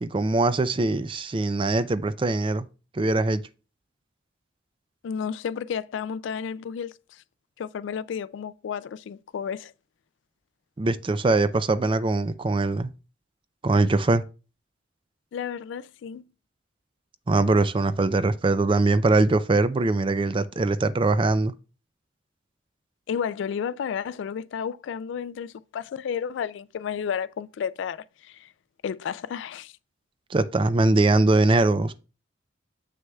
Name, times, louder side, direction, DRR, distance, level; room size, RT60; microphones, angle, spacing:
voice 1, 0.0-2.7 2.9-3.4 10.8-12.9 13.6-14.2 17.3-21.5 30.3-31.9, right 2 dB, 25° right, 0.4 m, -22 dB
voice 2, 5.0-7.2 7.6-9.7 15.3-16.2 23.1-28.5 28.8-29.7, left 7 dB, 70° left, 0.3 m, -32 dB
7.6 x 6.2 x 2.3 m
head